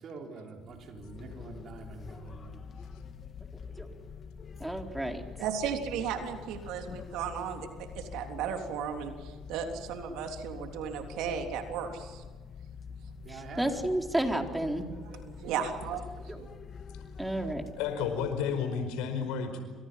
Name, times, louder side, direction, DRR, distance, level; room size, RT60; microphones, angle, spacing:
voice 1, 0.0-2.6 13.2-13.8, right 4 dB, 50° right, 2 dB, 5.3 m, -45 dB
sound 1, 0.6-18.8, left 6 dB, 40° left, 2.3 m, -46 dB
voice 2, 4.6-5.2 13.3-14.9 16.3-16.4 17.2-17.6, right 1 dB, 10° right, 3 dB, 4.2 m, -31 dB
voice 3, 5.4-12.2 15.1-16.0 16.3-16.5, right 7 dB, 70° right, 4 dB, 3.4 m, -35 dB
voice 4, 17.8-19.6, left 6 dB, 75° left, 7 dB, 5.0 m, -31 dB
30.0 x 25.5 x 5.9 m, 1.4 s
hypercardioid pair, 60°, 0 cm